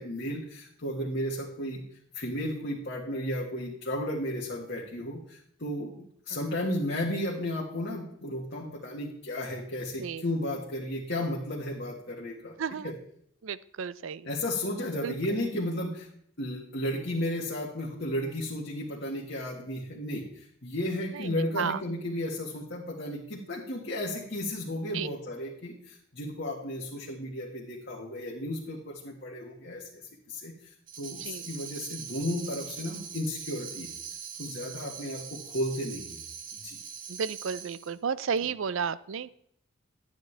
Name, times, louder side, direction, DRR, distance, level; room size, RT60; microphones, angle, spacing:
voice 1, 0.0-1.8 2.1-12.6 12.8-12.9 14.2-16.1 16.4-30.0 30.3-33.9 34.4-36.2 36.6-36.8, left 1 dB, 55° left, -4 dB, 1.6 m, -34 dB
voice 2, 12.6-12.9 13.4-14.3 15.0-15.1 21.1-21.8 24.9-25.1 31.2-31.5 37.1-39.3, right 6 dB, 75° right, 17 dB, 0.5 m, -33 dB
Tambourine, 30.9-38.0, right 7 dB, 40° right, 0.9 m, -42 dB
12.0 x 9.2 x 3.3 m, 0.70 s
head